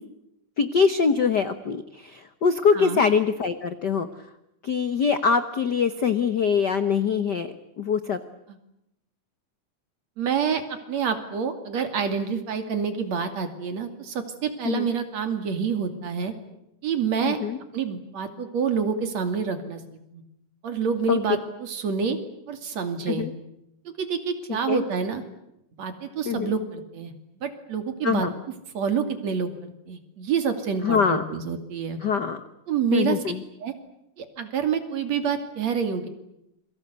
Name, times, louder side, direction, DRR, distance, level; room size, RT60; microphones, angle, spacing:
voice 1, 0.6-4.1 4.6-8.2 14.6-14.9 17.2-17.6 21.1-21.2 23.1-23.3 24.7-24.8 26.2-26.5 28.0-28.3 30.8-31.2 32.0-32.4 32.9-33.4, left 6 dB, 65° left, 11 dB, 1.0 m, -23 dB
voice 2, 10.2-16.3 16.8-17.4 17.7-19.8 20.1-20.2 20.6-22.2 22.5-23.3 23.9-25.2 25.8-27.1 27.4-28.3 28.7-32.0 32.7-33.2 33.6-33.7 34.2-36.1, right 6 dB, 60° right, 8 dB, 3.7 m, -27 dB
28.5 x 23.5 x 8.2 m, 0.82 s
omnidirectional pair, 3.6 m